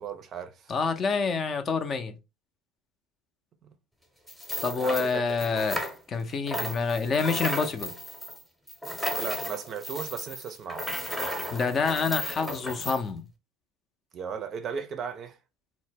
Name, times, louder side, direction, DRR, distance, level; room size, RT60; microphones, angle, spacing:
voice 1, 0.0-0.7 3.6-3.7 4.7-5.4 9.2-10.9 14.1-15.4, right 6 dB, 40° right, 0.4 m, -36 dB
voice 2, 0.7-2.2 4.6-5.8 6.1-7.9 11.5-13.2, left 5 dB, 35° left, 0.5 m, -27 dB
sound 1, 4.3-6.2 6.5-13.0, equal, 5° left, 0.7 m, -34 dB
2.1 x 2.0 x 3.4 m
hypercardioid pair, 90°, 0 cm